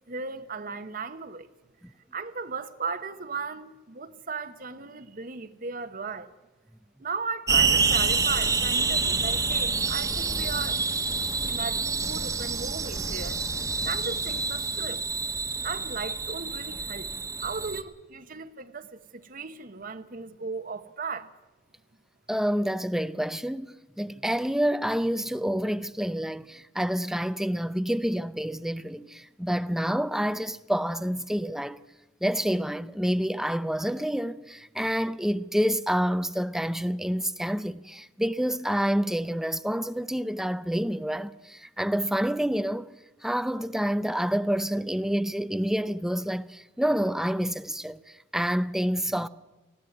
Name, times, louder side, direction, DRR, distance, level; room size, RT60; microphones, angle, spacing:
voice 1, 0.1-1.5 1.9-6.3 7.0-10.8 11.5-13.4 13.8-15.0 15.6-17.1 17.4-21.3, right 4 dB, 50° right, 1.1 m, -36 dB
sound 1, 7.5-17.8, right 4 dB, 20° right, 1.3 m, -27 dB
voice 2, 22.3-31.8 32.2-42.9 43.2-49.3, equal, 5° right, 0.6 m, -28 dB
19.0 x 15.0 x 9.6 m
head